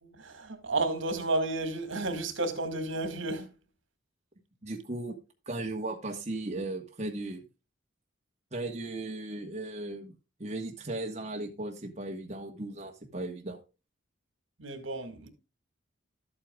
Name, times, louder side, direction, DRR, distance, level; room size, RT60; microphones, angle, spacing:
voice 1, 0.0-3.5 14.6-15.3, right 2 dB, 70° right, 2.0 m, -32 dB
voice 2, 4.6-5.2 5.5-7.4 8.5-10.1 10.4-13.6, right 2 dB, 35° right, 1.3 m, -36 dB
13.0 x 8.6 x 2.4 m
head